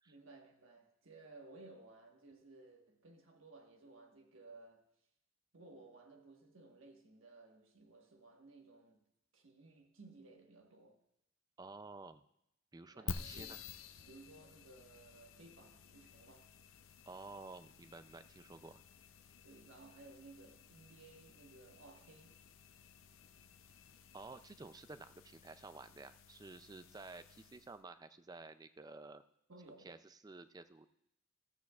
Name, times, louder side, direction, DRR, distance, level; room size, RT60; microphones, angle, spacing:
voice 1, 0.0-4.9 5.5-9.1 9.3-11.0 12.9-13.6 14.1-16.5 19.4-22.4 29.5-30.0, right 2 dB, 70° right, 1.4 m, -58 dB
voice 2, 11.6-12.2 12.7-13.6 17.1-18.8 24.1-29.2 29.8-30.9, right 3 dB, 20° right, 0.4 m, -52 dB
sound 1, 13.1-27.8, left 5 dB, 75° left, 0.5 m, -52 dB
14.5 x 14.5 x 2.4 m
head